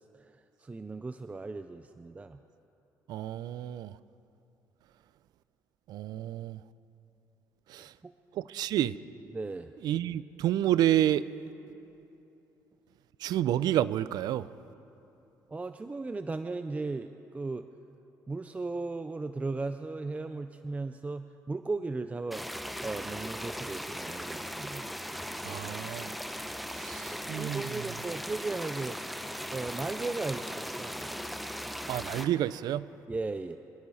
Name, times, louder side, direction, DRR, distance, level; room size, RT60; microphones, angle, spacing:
voice 1, 0.2-2.4 7.8-8.1 9.3-9.7 15.5-17.7 18.3-22.4 22.8-24.9 27.4-29.0 29.5-31.1 33.1-33.6, right 3 dB, 20° right, 0.5 m, -36 dB
voice 2, 3.1-4.0 5.9-6.6 7.7-7.9 8.3-8.9 9.8-11.2 13.2-14.5 25.4-26.1 26.8-27.9 31.9-32.9, right 12 dB, 75° right, 0.5 m, -29 dB
sound 1, 22.3-32.3, equal, ahead, 0.9 m, -38 dB
25.0 x 13.5 x 4.2 m
cardioid pair, 90°, 7 cm